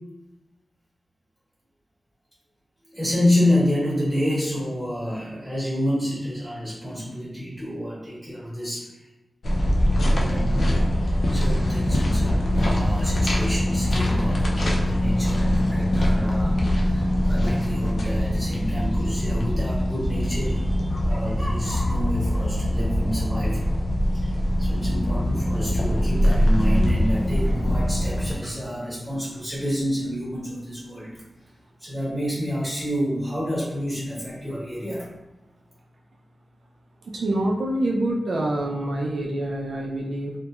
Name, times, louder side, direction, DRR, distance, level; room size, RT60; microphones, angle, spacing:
voice 1, 2.9-8.9 10.0-23.6 24.1-31.2 31.8-35.1, equal, ahead, -9 dB, 1.4 m, -28 dB
sound 1, 9.4-28.4, equal, 70° left, 0.4 m, -22 dB
voice 2, 37.0-40.3, right 1 dB, 80° right, -2 dB, 0.3 m, -26 dB
2.8 x 2.1 x 2.3 m, 1.0 s
wide cardioid pair, 95°, 0 cm